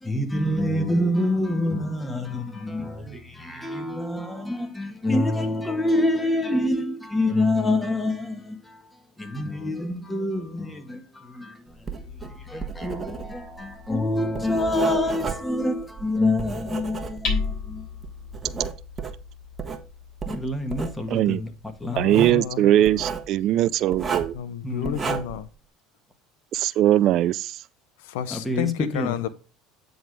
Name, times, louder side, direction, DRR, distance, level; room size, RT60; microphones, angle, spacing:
voice 1, 0.0-8.8 9.2-17.9 20.2-21.5 21.8-22.3 24.6-25.1 28.3-29.3, left 1 dB, 10° left, 1.7 m, -26 dB
Writing, 11.8-17.6 18.0-19.8 20.2-21.0 22.0-22.4 22.8-23.3 23.9-24.4 24.8-25.4, right 5 dB, 30° right, 1.3 m, -33 dB
Hammer, 12.0-23.8, left 5 dB, 50° left, 4.0 m, -38 dB
voice 2, 21.1-21.4 21.9-24.3 26.5-27.6, right 12 dB, 55° right, 0.3 m, -21 dB
voice 3, 21.9-23.0 24.3-25.5 28.0-29.3, left 9 dB, 75° left, 0.6 m, -31 dB
9.1 x 3.9 x 4.8 m
hypercardioid pair, 75°, 0 cm